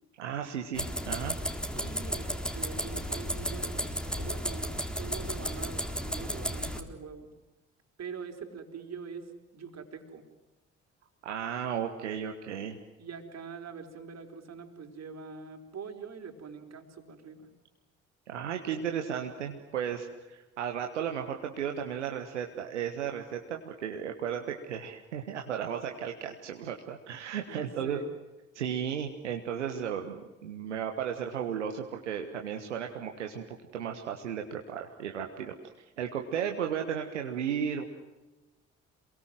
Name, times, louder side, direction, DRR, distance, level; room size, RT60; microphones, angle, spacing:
voice 1, 0.2-1.3 11.2-12.8 18.3-28.0 28.5-35.5 36.0-37.8, right 8 dB, 85° right, 4 dB, 1.4 m, -34 dB
sound 1, 0.7-6.8, equal, ahead, 3.7 m, -34 dB
voice 2, 1.7-7.3 8.0-10.3 13.0-17.5 27.5-28.1, right 5 dB, 50° right, 5 dB, 4.5 m, -44 dB
28.0 x 22.5 x 7.7 m, 1.1 s
figure-of-eight pair, 45°, 35 cm